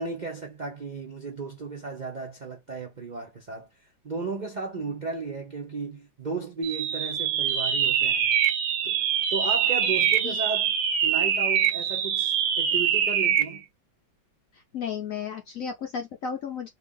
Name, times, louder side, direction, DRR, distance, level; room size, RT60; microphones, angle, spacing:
voice 1, 0.0-3.7 4.0-8.4 8.8-9.0 9.3-10.7 11.0-13.6, right 4 dB, 50° right, 0.5 m, -34 dB
sound 1, 6.6-13.6, right 9 dB, 75° right, 1.3 m, -24 dB
voice 2, 14.5-16.7, left 7 dB, 65° left, 0.9 m, -34 dB
3.4 x 2.4 x 3.6 m
omnidirectional pair, 2.0 m